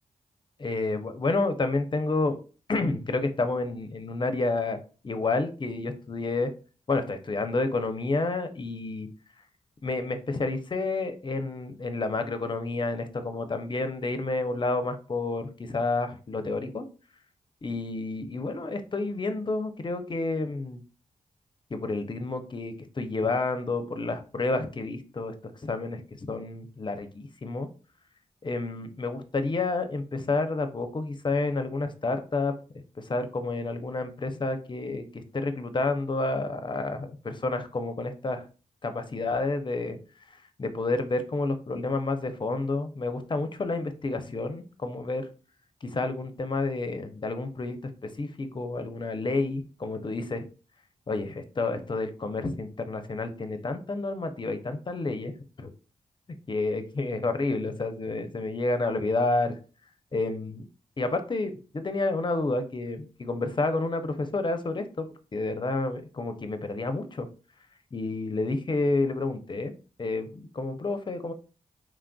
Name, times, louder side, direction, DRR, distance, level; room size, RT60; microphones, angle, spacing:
voice 1, 0.6-2.4 2.7-6.5 6.9-9.1 9.8-16.8 17.6-20.8 21.7-25.3 25.6-26.0 26.3-27.7 28.4-32.5 33.0-38.4 38.8-40.0 40.6-45.3 45.8-47.8 48.0-50.4 51.1-55.3 55.6-55.7 56.5-59.6 60.1-60.6 61.0-67.3 67.9-69.7 70.0-71.3, left 3 dB, 35° left, 8 dB, 0.5 m, -30 dB
3.1 x 2.5 x 2.3 m, 0.36 s
cardioid pair, 45°, 14 cm